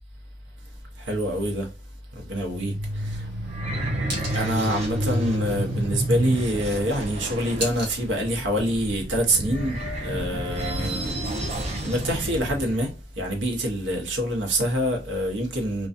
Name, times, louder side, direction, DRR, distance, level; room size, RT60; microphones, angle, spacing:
voice 1, 1.0-1.7 2.1-3.3 4.3-11.2 11.8-15.9, equal, 80° right, 0.8 m, -26 dB
sound 1, 2.3-12.8, right 1 dB, 35° right, 0.6 m, -30 dB
sound 2, 2.8-8.9, right 1 dB, 60° right, 1.1 m, -40 dB
2.5 x 2.2 x 2.4 m
head